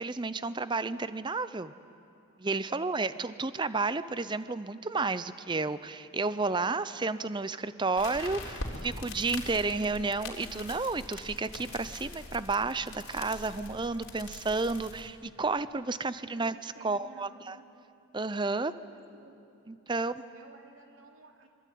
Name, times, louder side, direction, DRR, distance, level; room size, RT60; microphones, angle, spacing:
voice 1, 0.0-1.7 2.4-17.6 18.1-18.7 19.7-20.1, right 3 dB, 20° right, 14 dB, 0.5 m, -31 dB
sound 1, 8.0-15.1, left 2 dB, 75° left, 3.8 m, -43 dB
voice 2, 15.9-16.4 16.7-17.6 18.5-19.4 19.9-21.5, right 2 dB, 70° right, 2 dB, 3.1 m, -54 dB
25.5 x 23.0 x 9.3 m, 2.6 s
head